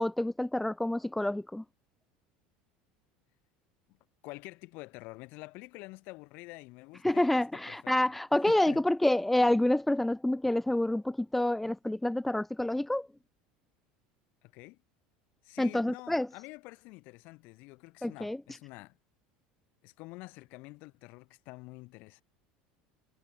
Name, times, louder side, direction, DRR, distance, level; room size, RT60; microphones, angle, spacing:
voice 1, 0.0-1.6 7.0-13.1 15.6-16.3 18.0-18.4, left 1 dB, 5° left, 1.4 m, -28 dB
voice 2, 4.2-7.9 8.3-8.8 14.4-14.8 15.4-19.0 19.8-22.2, left 24 dB, 65° left, 6.6 m, -48 dB
supercardioid pair, 110°, 3 cm